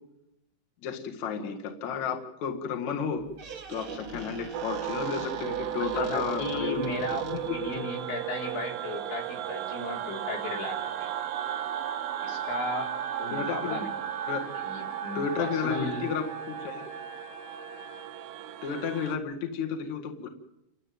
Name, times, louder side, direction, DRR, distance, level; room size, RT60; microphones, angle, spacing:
voice 1, 0.8-3.3 3.7-6.8 7.2-7.9 13.3-13.8 14.3-14.5 15.1-16.9 18.6-20.3, left 6 dB, 50° left, 2 dB, 2.5 m, -32 dB
Squeak, 3.1-7.8, right 6 dB, 55° right, 1.5 m, -42 dB
sound 1, 4.5-19.2, right 11 dB, 75° right, 2.3 m, -35 dB
voice 2, 5.8-11.1 12.2-12.9 13.2-13.9 14.5-16.0, left 2 dB, 70° left, -1 dB, 6.1 m, -35 dB
Trumpet, 12.3-18.1, left 2 dB, 30° left, 1.7 m, -46 dB
28.5 x 13.0 x 9.2 m, 0.87 s
omnidirectional pair, 5.4 m